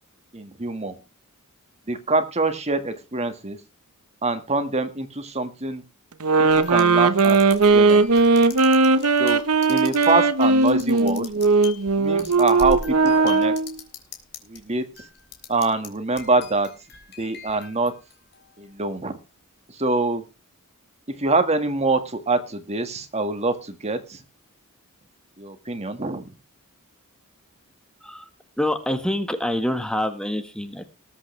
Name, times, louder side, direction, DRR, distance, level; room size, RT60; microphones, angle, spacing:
voice 1, 0.3-1.0 1.9-3.6 4.2-5.8 6.4-7.4 7.7-8.0 9.2-9.4 9.7-11.3 11.9-13.5 14.5-15.1 15.5-16.7 17.2-17.9 18.6-19.2 19.7-20.2 21.1-24.2 25.4-26.3, right 3 dB, 30° right, 9 dB, 1.8 m, -25 dB
sound 1, 6.2-13.8, right 3 dB, 80° right, 1.1 m, -18 dB
sound 2, 6.5-14.6 14.9-15.9 16.2-18.6, left 4 dB, 50° left, 3.6 m, -40 dB
voice 2, 28.6-30.9, left 1 dB, 5° left, 7 dB, 1.5 m, -26 dB
20.0 x 8.4 x 3.3 m, 0.30 s
head